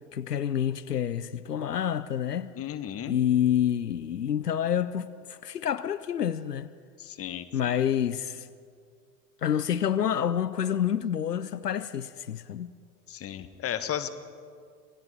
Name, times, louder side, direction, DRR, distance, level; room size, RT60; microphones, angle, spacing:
voice 1, 0.1-2.5 3.1-6.7 7.5-8.5 9.4-12.7, left 9 dB, 85° left, 0.6 m, -28 dB
voice 2, 2.5-3.2 7.0-7.8 13.1-14.1, left 10 dB, 30° left, 1.3 m, -34 dB
26.5 x 19.5 x 5.1 m
figure-of-eight pair, 75°, 46 cm